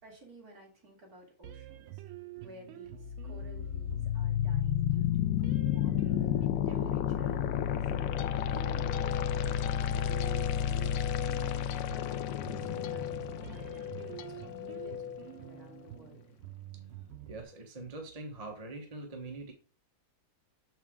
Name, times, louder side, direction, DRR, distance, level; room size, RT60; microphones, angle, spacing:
voice 1, 0.0-2.0 2.4-6.3 6.6-8.1 8.5-16.3, equal, 45° right, -2 dB, 3.3 m, -54 dB
sound 1, 1.4-17.4, right 13 dB, 80° right, 1.7 m, -48 dB
sound 2, 2.9-14.9, left 10 dB, 75° left, 1.0 m, -31 dB
sound 3, 7.7-16.0, left 10 dB, 90° left, 1.5 m, -42 dB
voice 2, 17.3-19.5, right 2 dB, 25° right, 2 dB, 0.9 m, -43 dB
7.4 x 5.8 x 3.6 m, 0.39 s
omnidirectional pair, 2.3 m